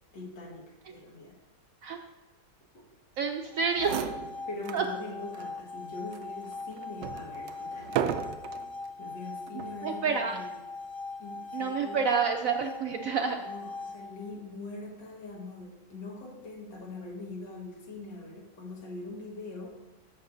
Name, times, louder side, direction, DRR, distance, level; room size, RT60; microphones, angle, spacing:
voice 1, 0.1-1.4 2.7-2.8 4.5-8.2 9.0-10.5 11.2-12.0 13.4-19.8, left 2 dB, 85° left, 0 dB, 2.2 m, -42 dB
voice 2, 3.2-3.9 4.7-4.8 9.8-10.4 11.5-13.4, right 6 dB, 65° right, 4 dB, 0.8 m, -28 dB
sound 1, 3.4-14.4, left 3 dB, 60° left, 0.5 m, -41 dB
sound 2, 3.5-3.6 3.7-4.9 5.3-5.5 6.1-8.7 9.5-9.8, right 9 dB, 90° right, 1.3 m, -35 dB
14.0 x 6.0 x 2.6 m, 1.1 s
omnidirectional pair, 1.9 m